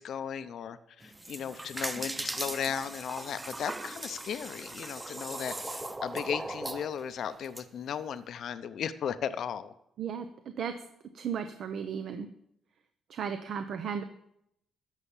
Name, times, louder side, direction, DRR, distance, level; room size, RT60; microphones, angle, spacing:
voice 1, 0.0-9.7, left 8 dB, 65° left, 13 dB, 0.7 m, -36 dB
sound 1, 1.0-7.6, right 2 dB, 15° right, 0.9 m, -38 dB
voice 2, 11.1-12.3 13.1-14.0, right 7 dB, 65° right, 9 dB, 0.8 m, -34 dB
13.0 x 5.7 x 7.3 m, 0.77 s
cardioid pair, 90°, 0 cm